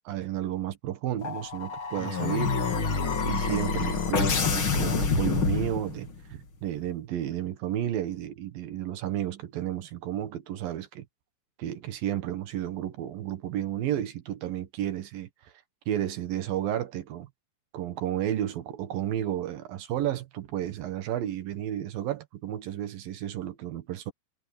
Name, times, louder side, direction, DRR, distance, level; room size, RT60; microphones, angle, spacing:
voice 1, 0.1-2.7 3.2-11.1 11.6-15.3 15.9-17.3 17.7-24.1, right 11 dB, 65° right, 2.6 m, -32 dB
sound 1, 1.2-6.2, left 5 dB, 35° left, 2.2 m, -27 dB
omnidirectional pair, 5.5 m